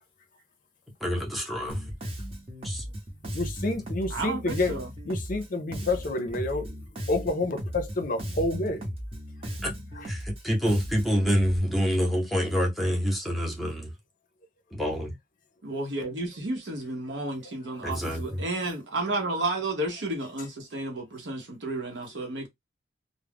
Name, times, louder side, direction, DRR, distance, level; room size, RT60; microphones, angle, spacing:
voice 1, 1.0-1.8 2.6-2.8 9.6-9.7 10.1-13.9 14.7-15.1 17.8-18.4, equal, ahead, 0.7 m, -27 dB
Bass guitar, 1.7-11.6, equal, 30° right, 0.8 m, -36 dB
voice 2, 3.3-4.7 5.1-6.8 7.1-8.9, left 2 dB, 45° left, 0.5 m, -28 dB
voice 3, 4.1-4.9 15.6-22.5, right 2 dB, 70° right, 0.8 m, -32 dB
2.3 x 2.0 x 3.4 m
head